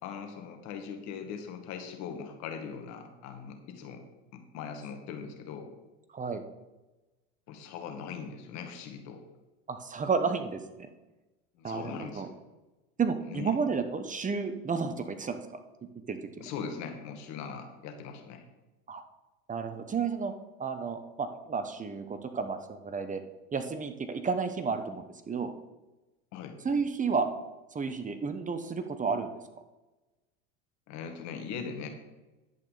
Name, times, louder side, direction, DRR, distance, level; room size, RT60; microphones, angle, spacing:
voice 1, 0.0-4.0 4.3-5.7 7.5-9.2 11.6-12.3 13.3-13.5 16.4-18.4 26.3-26.6 30.9-31.9, left 6 dB, 60° left, 5 dB, 2.0 m, -40 dB
voice 2, 9.7-10.9 11.6-12.3 13.0-15.6 16.1-16.3 18.9-19.0 19.5-20.3 20.6-23.2 23.5-25.5 26.6-27.3 27.7-29.3, right 5 dB, 25° right, 9 dB, 1.0 m, -32 dB
11.0 x 8.5 x 4.1 m, 1.1 s
supercardioid pair, 90°, 31 cm